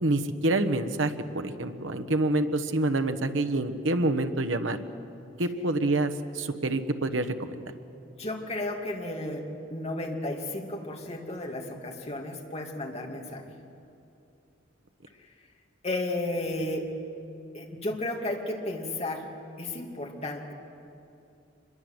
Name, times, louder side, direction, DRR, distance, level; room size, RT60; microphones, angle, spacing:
voice 1, 0.0-4.8 5.4-7.6, right 2 dB, 75° right, 8 dB, 1.3 m, -27 dB
voice 2, 8.0-13.4 15.8-16.9 17.5-19.3 19.6-20.5, left 1 dB, 35° left, 1 dB, 2.6 m, -33 dB
25.5 x 22.0 x 8.1 m, 2.7 s
head